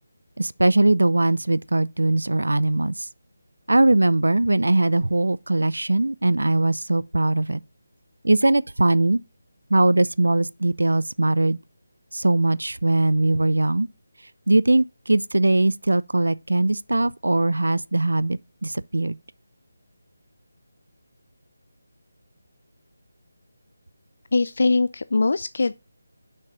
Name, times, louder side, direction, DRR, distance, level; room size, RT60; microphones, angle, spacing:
voice 1, 0.4-3.1 3.7-7.6 8.2-9.2 9.7-11.6 12.1-13.9 14.5-19.2, right 2 dB, 80° right, 0.4 m, -20 dB
voice 2, 24.3-25.7, left 3 dB, 60° left, 0.3 m, -21 dB
6.3 x 5.7 x 3.7 m
figure-of-eight pair, 160°, 0 cm